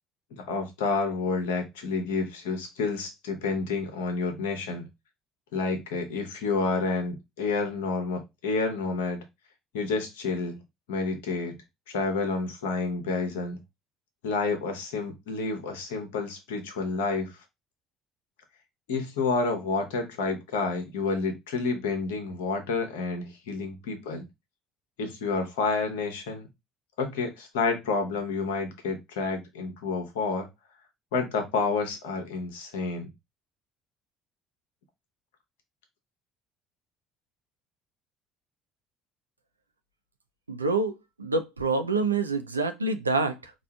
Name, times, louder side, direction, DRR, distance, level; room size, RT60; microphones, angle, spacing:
voice 1, 0.3-4.9 5.5-9.2 9.7-10.6 10.9-11.6 11.9-13.6 14.2-17.3 18.9-24.2 25.0-26.5 27.0-30.5 31.1-33.1, left 4 dB, 70° left, 0.8 m, -29 dB
voice 2, 40.5-43.5, right 3 dB, 85° right, 0.3 m, -27 dB
4.5 x 2.4 x 2.2 m
figure-of-eight pair, 55°, 0 cm